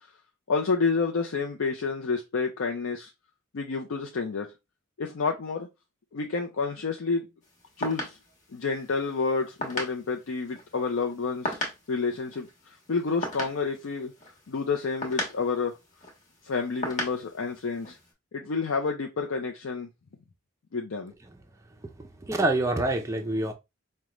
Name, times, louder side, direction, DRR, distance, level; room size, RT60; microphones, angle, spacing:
voice 1, 0.5-3.1 3.5-4.5 5.0-5.7 6.1-7.3 7.8-8.2 8.5-11.6 11.9-14.1 14.5-15.7 16.4-18.0 18.3-19.9 20.7-21.1, left 4 dB, 80° left, 0.5 m, -29 dB
sound 1, 7.4-18.1, left 1 dB, 35° left, 1.2 m, -38 dB
voice 2, 22.0-23.5, right 2 dB, 15° right, 0.4 m, -26 dB
5.0 x 2.2 x 3.0 m
head